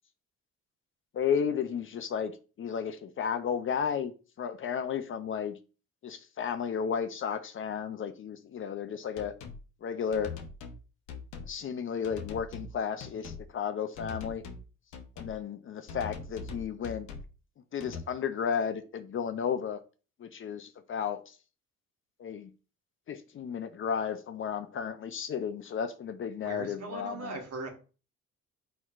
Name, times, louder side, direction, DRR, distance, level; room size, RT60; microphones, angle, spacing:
voice 1, 1.1-5.6 6.0-9.4 9.8-10.4 11.4-14.4 15.2-17.1 17.7-19.8 20.2-21.3 22.2-22.5 23.1-27.4, left 7 dB, 45° left, 0.5 m, -33 dB
sound 1, 9.2-9.6 10.1-10.8 11.1-11.6 12.0-12.7 13.0-13.5 14.0-14.6 14.9-15.4 15.9-17.3 17.8-18.0, left 4 dB, 80° left, 0.8 m, -42 dB
voice 2, 26.4-27.7, right 3 dB, 55° right, 1.4 m, -39 dB
4.4 x 4.4 x 2.4 m
cardioid pair, 90°, 30 cm